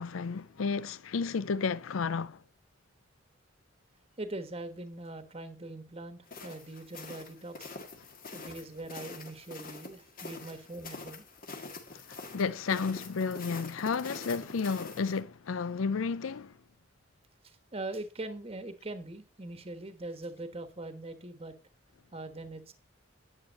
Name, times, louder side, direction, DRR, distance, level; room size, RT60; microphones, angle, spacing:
voice 1, 0.0-2.4 11.9-12.0 12.3-16.5, left 5 dB, 90° left, 0.5 m, -32 dB
voice 2, 4.2-7.8 8.3-11.3 17.4-21.6 22.1-22.7, right 2 dB, 30° right, 1.3 m, -42 dB
sound 1, 6.3-15.2, left 3 dB, 45° left, 1.8 m, -45 dB
10.5 x 8.1 x 4.1 m
head